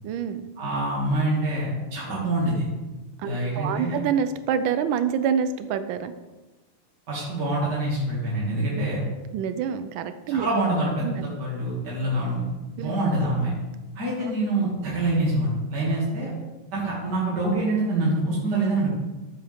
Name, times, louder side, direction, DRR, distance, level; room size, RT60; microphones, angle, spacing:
voice 1, 0.0-0.5 3.2-6.1 8.7-10.5 11.0-11.2 12.8-12.9 14.2-14.3, right 7 dB, 70° right, 11 dB, 1.4 m, -27 dB
voice 2, 0.6-2.7 3.2-4.0 7.1-9.0 10.3-12.4 12.8-13.5 13.9-16.3 16.7-18.9, right 2 dB, 50° right, -7 dB, 3.1 m, -25 dB
13.5 x 7.7 x 3.6 m, 1.1 s
omnidirectional pair, 2.4 m